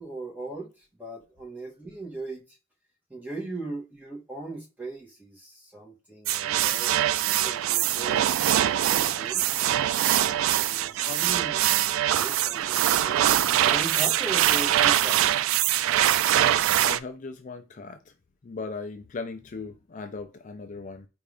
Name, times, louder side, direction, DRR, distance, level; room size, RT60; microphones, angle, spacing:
voice 1, 0.0-2.4 3.1-8.2 8.7-9.8 10.5-11.6 12.1-15.4, right 2 dB, 10° right, 1.5 m, -39 dB
sound 1, 6.3-17.0, right 12 dB, 85° right, 0.3 m, -23 dB
voice 2, 10.7-11.1 16.8-18.1 18.4-21.1, left 4 dB, 40° left, 0.4 m, -38 dB
4.5 x 2.5 x 3.4 m
head